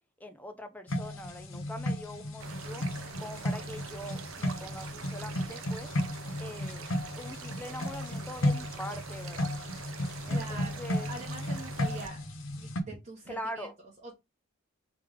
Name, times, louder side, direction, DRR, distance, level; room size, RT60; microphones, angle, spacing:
voice 1, 0.2-2.8 3.2-5.9 6.4-6.8 7.1-9.5 10.3-11.1 13.3-13.7, equal, 10° left, 0.5 m, -42 dB
sound 1, 0.9-12.8, left 1 dB, 70° left, 0.8 m, -34 dB
sound 2, 2.4-12.1, right 6 dB, 80° right, 0.5 m, -45 dB
voice 2, 10.2-12.3 12.6-14.2, right 2 dB, 35° right, 1.0 m, -44 dB
3.3 x 3.2 x 3.4 m
head